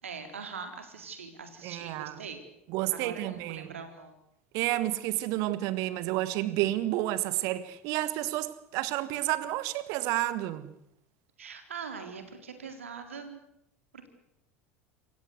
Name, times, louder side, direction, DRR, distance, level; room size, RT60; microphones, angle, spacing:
voice 1, 0.0-2.4 3.0-4.1 11.4-13.4, right 5 dB, 75° right, 4.1 m, -42 dB
voice 2, 1.6-2.2 2.7-3.7 4.5-10.7, right 15 dB, 50° right, 1.8 m, -30 dB
28.0 x 16.5 x 8.1 m
figure-of-eight pair, 75°, 7 cm